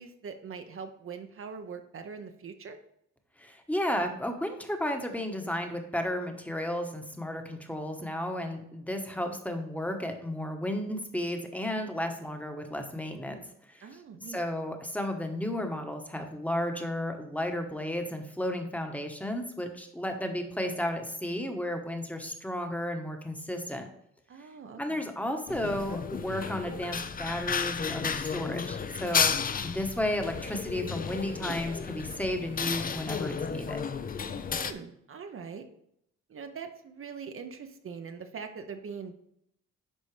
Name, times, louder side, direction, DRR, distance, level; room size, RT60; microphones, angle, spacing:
voice 1, 0.0-2.8 13.8-14.4 24.3-25.0 34.5-35.6 36.3-39.1, right 6 dB, 45° right, 7 dB, 0.7 m, -42 dB
voice 2, 3.4-13.4 13.7-14.0 14.3-23.9 24.8-29.3 29.6-33.8, left 1 dB, 5° left, 5 dB, 1.1 m, -33 dB
sound 1, 25.5-34.7, left 6 dB, 30° left, 0.5 m, -33 dB
11.0 x 4.0 x 3.3 m, 0.75 s
cardioid pair, 90°, 30 cm